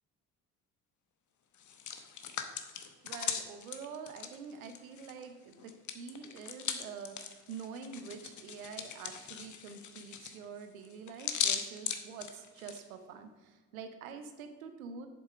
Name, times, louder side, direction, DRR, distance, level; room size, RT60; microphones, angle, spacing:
Hands, 1.5-5.2 5.5-12.8, left 8 dB, 45° left, 1.0 m, -39 dB
voice 1, 3.0-15.1, right 6 dB, 80° right, 8 dB, 0.9 m, -46 dB
7.3 x 7.3 x 5.0 m, 1.3 s
hypercardioid pair, 50°, 41 cm